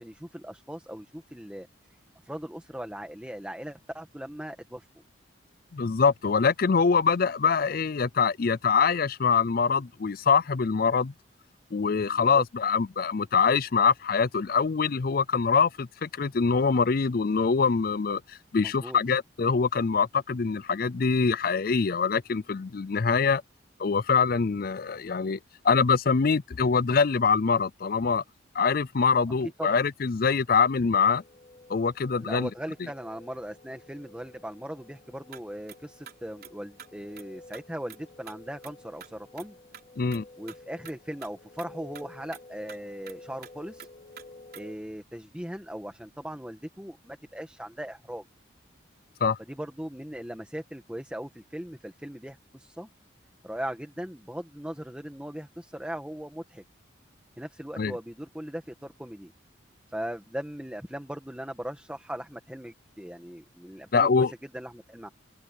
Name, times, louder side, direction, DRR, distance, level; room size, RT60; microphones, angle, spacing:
voice 1, 0.0-1.7 2.2-5.0 12.1-12.4 18.6-19.0 29.6-29.8 32.2-39.6 40.4-43.9 44.5-48.2 49.5-52.9 53.4-56.6 57.4-59.3 59.9-65.1, equal, 5° right, 1.6 m, -39 dB
voice 2, 5.7-11.1 11.7-23.4 23.8-25.4 25.6-28.2 28.5-31.2 31.7-32.5 40.0-40.2 49.2-49.4 57.8-58.0 63.9-64.3, left 5 dB, 50° left, 0.5 m, -24 dB
sound 1, 30.9-44.8, left 2 dB, 30° left, 3.5 m, -52 dB
sound 2, 35.3-35.4 35.7-35.8 36.1-36.5 36.8-36.9 37.2-37.3 37.5-37.6 37.9-38.0 38.3-38.4 38.6-38.7 39.0-39.5 39.7-39.8 40.1-40.2 40.5-40.6 40.8-41.0 41.2-41.3 41.6-41.7 41.9-42.0 42.3-42.4 42.7-42.8 43.1-43.2 43.4-43.5 43.8-43.9 44.2-44.3 44.5-44.6, right 7 dB, 50° right, 5.1 m, -45 dB
open air
head